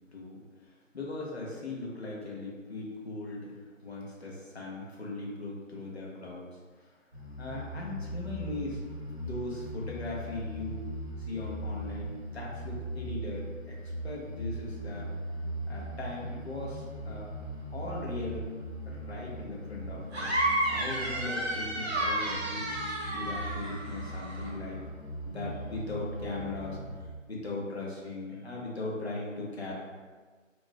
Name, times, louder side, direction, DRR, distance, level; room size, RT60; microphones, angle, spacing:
voice 1, 0.1-6.9 7.4-8.9 9.2-10.9 11.2-13.8 14.0-15.1 15.7-17.3 17.7-18.4 18.8-22.8 23.1-24.9 25.2-29.8, left 2 dB, 55° left, -4 dB, 0.8 m, -39 dB
sound 1, 7.1-27.0, right 1 dB, 5° left, 1.2 m, -39 dB
sound 2, 20.1-24.5, right 1 dB, 55° right, 0.8 m, -31 dB
3.7 x 2.5 x 2.2 m, 1.4 s
figure-of-eight pair, 160°, 39 cm